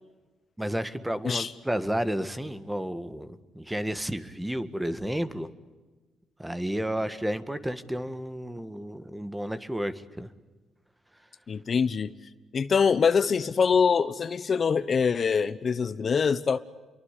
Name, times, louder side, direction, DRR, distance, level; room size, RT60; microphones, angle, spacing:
voice 1, 0.6-5.5 6.4-10.3, equal, 5° right, 1.8 m, -31 dB
voice 2, 11.5-12.1 12.5-16.6, left 6 dB, 45° left, 1.1 m, -24 dB
29.5 x 23.5 x 8.4 m
cardioid pair, 90°, 0 cm